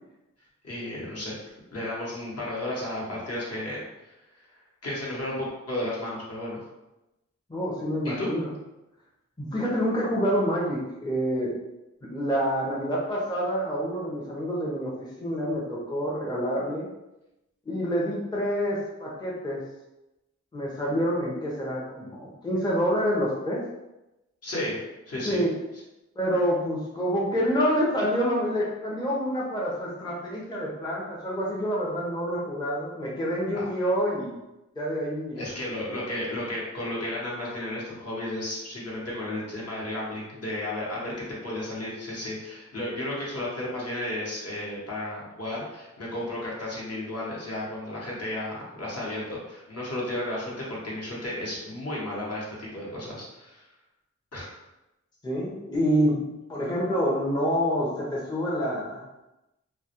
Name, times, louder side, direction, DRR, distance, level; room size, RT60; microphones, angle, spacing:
voice 1, 0.6-1.4 1.7-4.5 4.8-6.6 8.0-8.3 24.4-25.4 33.5-33.7 35.4-53.7 54.3-54.6, left 1 dB, 55° left, -5 dB, 0.9 m, -33 dB
voice 2, 7.5-8.5 9.4-11.5 12.1-16.9 17.7-19.6 20.5-23.6 25.3-25.5 26.2-34.3 34.8-35.4 55.2-56.2 56.5-59.0, equal, 15° left, -4 dB, 0.5 m, -27 dB
2.1 x 2.1 x 2.8 m, 0.97 s
cardioid pair, 50°, 29 cm